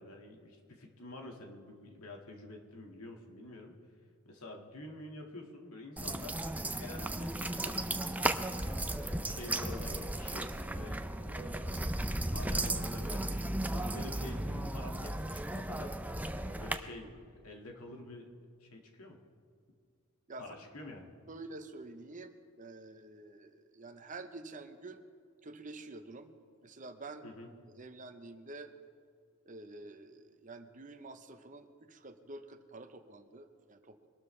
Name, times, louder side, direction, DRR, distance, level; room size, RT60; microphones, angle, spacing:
voice 1, 0.0-3.7 4.2-6.4 6.8-8.4 8.9-11.8 12.3-13.3 13.6-16.1 16.4-18.3 18.6-19.2 20.4-21.1 27.2-27.5, left 1 dB, 80° left, 1 dB, 2.0 m, -48 dB
sound 1, 6.0-16.7, right 1 dB, 5° right, 0.5 m, -35 dB
voice 2, 21.3-25.0 25.4-26.3 26.6-27.3 27.8-28.7 29.5-34.1, right 2 dB, 35° right, 8 dB, 0.9 m, -48 dB
23.5 x 12.5 x 3.3 m, 2.3 s
head